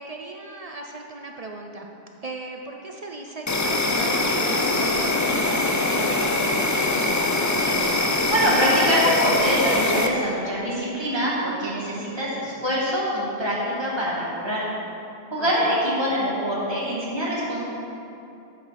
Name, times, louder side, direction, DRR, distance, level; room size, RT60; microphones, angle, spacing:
voice 1, 0.0-1.9 2.2-7.3 15.4-15.8, right 2 dB, 45° right, 2 dB, 0.5 m, -37 dB
Insect, 3.5-10.1, left 2 dB, 30° left, 0.3 m, -23 dB
voice 2, 8.0-14.6 15.3-17.6, equal, 25° right, -7 dB, 2.0 m, -24 dB
7.9 x 6.3 x 5.8 m, 2.7 s
omnidirectional pair, 1.2 m